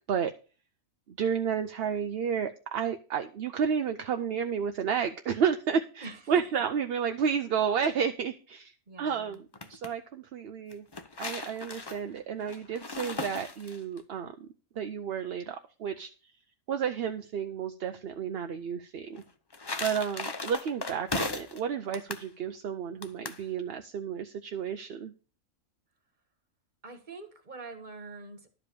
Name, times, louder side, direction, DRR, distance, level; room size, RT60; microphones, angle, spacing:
voice 1, 1.1-10.8 11.2-14.5 14.8-16.1 16.7-19.2 19.8-25.1, right 7 dB, 55° right, 7 dB, 0.8 m, -31 dB
voice 2, 6.0-6.6 8.9-9.4 26.8-28.6, right 3 dB, 35° right, 8 dB, 1.6 m, -45 dB
sound 1, 9.3-9.9 10.7-14.0 19.2-21.6 21.9-22.3 23.0-23.4, left 3 dB, 25° left, 0.6 m, -37 dB
12.0 x 5.0 x 6.8 m, 0.36 s
omnidirectional pair, 1.4 m